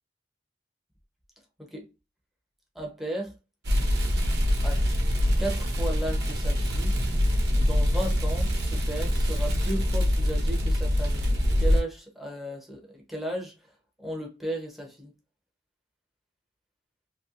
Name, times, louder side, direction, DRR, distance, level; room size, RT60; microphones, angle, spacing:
voice 1, 2.7-3.4 4.6-4.8 5.4-7.0 7.5-11.3 11.6-13.5 14.0-15.1, right 1 dB, ahead, 0.8 m, -35 dB
sound 1, 3.6-11.8, equal, 65° right, 1.0 m, -24 dB
3.0 x 2.9 x 2.5 m
head